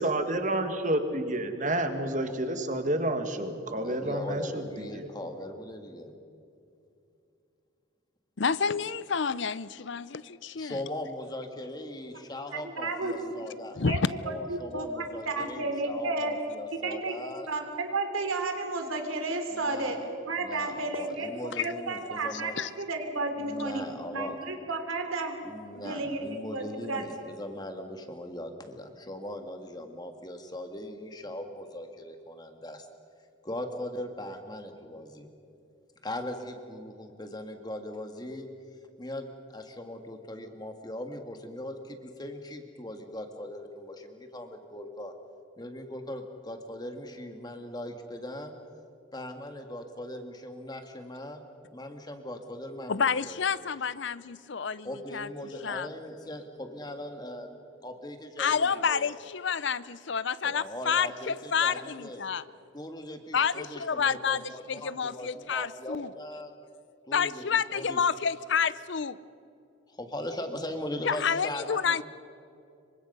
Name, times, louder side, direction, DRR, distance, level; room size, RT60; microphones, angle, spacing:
voice 1, 0.0-5.1, right 1 dB, 35° right, 7 dB, 1.8 m, -29 dB
voice 2, 3.7-6.1 10.5-13.8 14.2-17.5 19.5-20.0 20.4-22.6 23.4-24.4 25.4-32.9 33.4-35.3 36.0-38.5 39.0-45.1 45.6-48.5 49.1-51.4 51.7-53.4 54.8-59.1 60.4-62.2 62.7-66.5 67.1-67.4 67.7-68.0 69.9-72.0, left 1 dB, 20° left, 5 dB, 1.7 m, -40 dB
voice 3, 8.4-10.8 13.8-14.0 21.5-21.7 22.3-22.7 52.9-55.3 55.6-55.9 58.4-62.4 63.3-66.1 67.1-69.2 71.0-72.0, left 6 dB, 60° left, 17 dB, 0.6 m, -29 dB
voice 4, 12.5-13.2 13.9-14.0 14.5-16.3 16.8-17.1 17.5-20.0 20.3-21.3 21.6-22.5 22.8-23.8 24.1-25.4 25.7-26.2 26.5-27.0, right 3 dB, 80° right, 6 dB, 3.1 m, -32 dB
26.5 x 24.0 x 5.5 m, 2.6 s
head